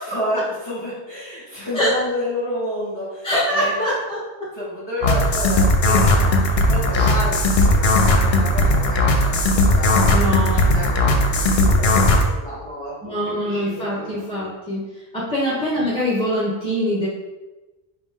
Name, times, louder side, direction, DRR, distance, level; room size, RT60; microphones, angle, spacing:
voice 1, 0.1-3.7 4.5-11.1 11.3-14.2 15.4-15.5, equal, 25° left, -9 dB, 1.5 m, -30 dB
voice 2, 3.2-4.2 6.9-7.1 10.1-10.6 13.0-14.8 15.1-17.1, equal, 5° left, -7 dB, 0.9 m, -23 dB
sound 1, 5.0-12.2, left 1 dB, 65° left, 0.8 m, -17 dB
4.7 x 3.0 x 3.6 m, 1.1 s
omnidirectional pair, 1.1 m